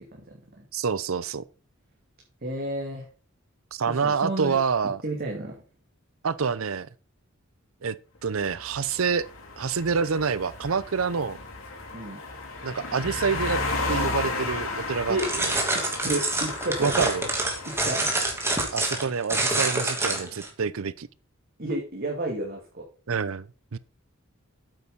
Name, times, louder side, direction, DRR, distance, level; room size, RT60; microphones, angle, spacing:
voice 1, 0.7-1.4 3.7-5.0 6.2-6.9 7.8-7.9 8.2-9.2 9.6-11.4 12.6-13.6 13.9-15.2 16.8-17.3 18.7-21.1 23.1-23.8, right 5 dB, 75° right, 0.7 m, -27 dB
voice 2, 2.4-3.1 3.9-4.6 5.0-5.6 11.9-12.2 15.1-15.3 15.7-16.9 17.7-18.2 19.1-19.2 21.6-22.8, right 1 dB, 45° right, 2.6 m, -31 dB
sound 1, 8.4-18.7, left 3 dB, 80° left, 4.0 m, -34 dB
sound 2, 15.2-20.5, right 2 dB, 10° right, 2.8 m, -27 dB
9.0 x 8.5 x 4.0 m
head